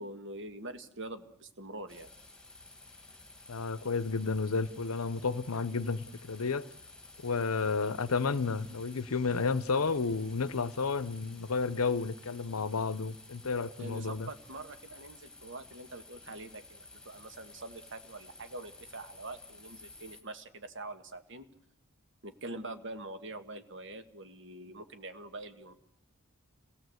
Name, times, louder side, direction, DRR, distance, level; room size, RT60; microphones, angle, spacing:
voice 1, 0.0-2.1 13.8-21.4 22.2-25.7, right 2 dB, 55° right, 1.8 m, -44 dB
sound 1, 1.9-20.2, left 2 dB, 5° left, 2.2 m, -54 dB
voice 2, 3.5-6.7 7.2-14.3, left 4 dB, 80° left, 0.8 m, -31 dB
26.5 x 17.0 x 8.0 m
head